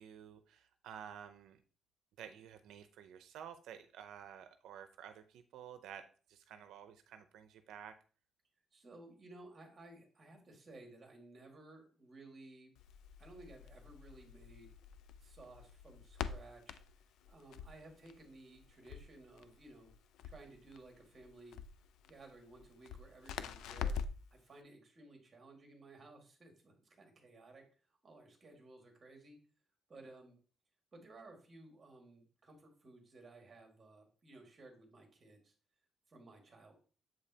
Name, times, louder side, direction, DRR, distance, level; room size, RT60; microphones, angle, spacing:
voice 1, 0.0-1.6 2.2-6.0 6.3-7.9, right 9 dB, 85° right, 9 dB, 0.5 m, -52 dB
voice 2, 8.7-12.7 13.2-14.7 15.2-16.8 17.3-19.9 20.2-21.6 22.1-24.0 24.3-29.4 29.9-30.4 30.9-35.5 36.1-36.8, right 2 dB, 25° right, 2 dB, 1.8 m, -57 dB
Crackle, 12.8-24.3, left 7 dB, 90° left, 0.4 m, -46 dB
7.6 x 5.1 x 2.8 m, 0.39 s
cardioid pair, 155°, 0 cm